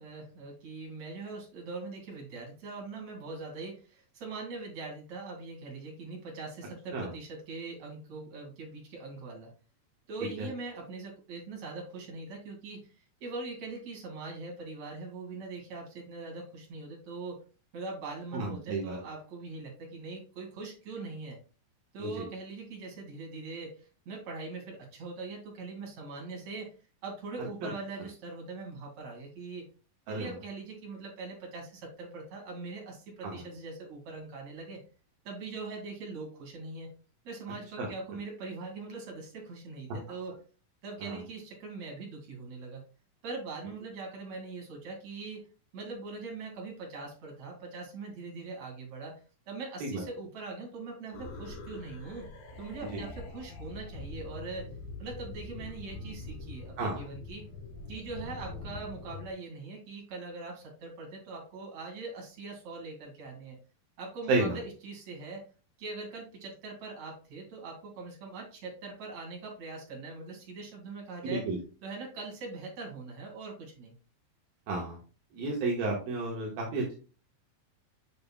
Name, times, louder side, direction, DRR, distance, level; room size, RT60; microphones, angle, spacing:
voice 1, 0.0-9.5 10.1-12.9 13.2-17.4 17.7-21.4 21.9-26.7 27.0-29.6 30.1-34.8 35.3-36.9 37.2-40.4 40.8-42.8 43.2-45.4 45.7-49.1 49.5-52.3 52.6-54.7 55.0-57.5 57.9-63.6 64.0-65.4 65.8-71.5 71.8-73.9, right 3 dB, 50° right, -1 dB, 3.7 m, -42 dB
voice 2, 18.3-19.0 22.0-22.2 27.6-27.7 30.1-30.3 33.2-33.3 37.8-37.9 41.0-41.2 49.8-50.0 52.9-53.0 56.8-57.1 64.3-64.6 71.2-71.6 74.7-75.0 75.3-76.9, right 2 dB, 75° right, -2 dB, 3.2 m, -32 dB
sound 1, 51.1-59.3, left 3 dB, 75° left, 3.3 m, -44 dB
7.9 x 6.7 x 2.4 m, 0.34 s
omnidirectional pair, 4.2 m